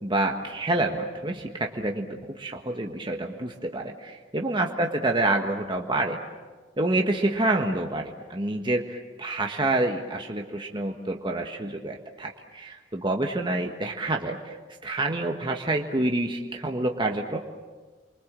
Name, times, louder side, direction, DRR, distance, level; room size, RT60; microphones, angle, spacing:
voice 1, 0.0-6.2 6.8-14.6 14.8-17.4, right 2 dB, 25° right, 2 dB, 1.5 m, -27 dB
29.0 x 23.5 x 7.6 m, 1.3 s
head